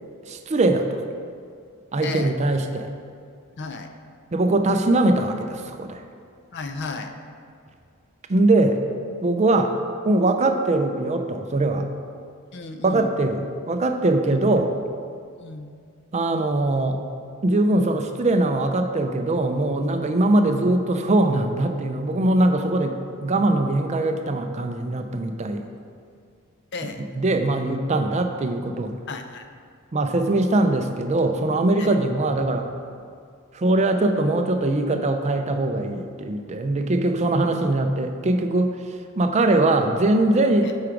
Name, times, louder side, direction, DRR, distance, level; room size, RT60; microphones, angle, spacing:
voice 1, 0.3-1.0 1.9-2.9 4.3-6.0 8.3-8.8 9.2-9.7 10.1-11.9 12.8-14.7 16.1-17.0 17.4-25.6 27.0-28.9 29.9-32.7 33.5-38.8 39.2-40.7, right 2 dB, 30° right, 6 dB, 0.4 m, -21 dB
voice 2, 2.0-2.3 3.6-3.9 6.5-7.1 12.5-13.1 14.3-14.4 15.4-15.7 26.7-27.0 29.1-29.4 31.8-32.0 40.6-40.8, left 3 dB, 50° left, 7 dB, 0.5 m, -33 dB
8.7 x 4.8 x 4.6 m, 2.2 s
head